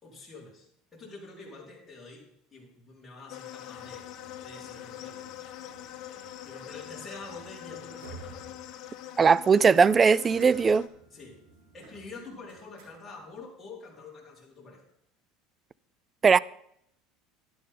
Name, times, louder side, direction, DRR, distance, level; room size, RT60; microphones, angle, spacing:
voice 1, 0.0-4.1 4.4-5.4 6.4-8.5 11.1-11.4 11.7-14.8, left 3 dB, 15° left, 4.4 m, -47 dB
sound 1, 3.3-10.9, left 12 dB, 55° left, 1.2 m, -44 dB
sound 2, 3.7-13.4, right 5 dB, 85° right, 3.2 m, -53 dB
voice 2, 9.2-10.9 16.2-16.4, right 5 dB, 25° right, 0.3 m, -19 dB
12.0 x 11.0 x 3.8 m
supercardioid pair, 125°, 0 cm